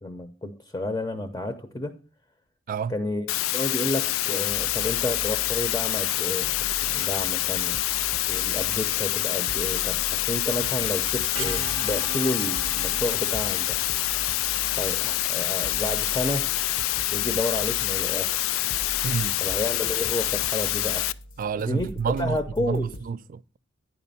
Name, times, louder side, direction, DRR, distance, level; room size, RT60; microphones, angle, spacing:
voice 1, 0.0-1.9 2.9-7.8 8.3-13.8 14.8-16.5 17.1-18.6 19.4-21.1 21.5-22.9, left 1 dB, 15° left, 0.6 m, -31 dB
voice 2, 2.7-3.0 19.0-19.4 21.4-23.6, right 6 dB, 45° right, 0.3 m, -29 dB
sound 1, 3.3-21.1, left 15 dB, 90° left, 0.3 m, -26 dB
sound 2, 4.4-23.0, equal, 65° left, 0.8 m, -42 dB
sound 3, 9.9-15.8, right 5 dB, 85° right, 0.7 m, -41 dB
9.7 x 5.1 x 5.4 m
head